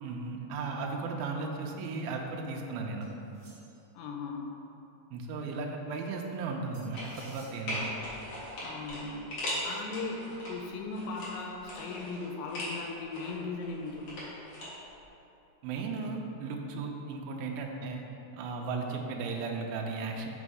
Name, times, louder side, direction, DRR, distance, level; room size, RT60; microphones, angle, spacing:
voice 1, 0.0-3.1 5.1-7.8 15.6-18.1 18.3-20.3, right 4 dB, 90° right, 1 dB, 2.1 m, -36 dB
sound 1, 3.0-3.9 6.7-7.6, right 2 dB, 55° right, 1.9 m, -57 dB
voice 2, 3.9-4.5 8.6-9.3 9.6-14.1, left 3 dB, 85° left, 1 dB, 2.9 m, -38 dB
sound 2, 6.9-7.4 7.7-10.5 10.9-12.8 13.1-14.7 14.9-15.0, left 1 dB, 50° left, 1.7 m, -39 dB
6.1 x 5.4 x 4.9 m, 2.8 s
omnidirectional pair, 5.0 m